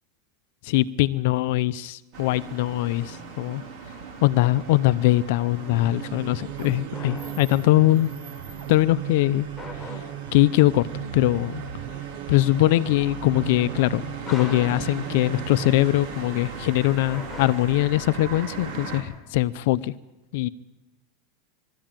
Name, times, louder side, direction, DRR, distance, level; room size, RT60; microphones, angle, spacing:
voice 1, 0.6-3.6 4.2-8.1 8.7-9.5 9.8-10.1 10.3-11.6 12.3-14.0 14.3-19.9 20.3-20.5, left 17 dB, 65° left, 0.6 m, -22 dB
sound 1, 2.1-19.0, right 4 dB, 50° right, 4.5 m, -39 dB
sound 2, 5.4-16.5, right 13 dB, 65° right, 0.7 m, -37 dB
sound 3, 6.9-8.0 9.6-10.6 14.3-15.8 17.1-18.3, left 2 dB, 5° left, 6.3 m, -41 dB
22.0 x 14.0 x 9.0 m
supercardioid pair, 145°, 0 cm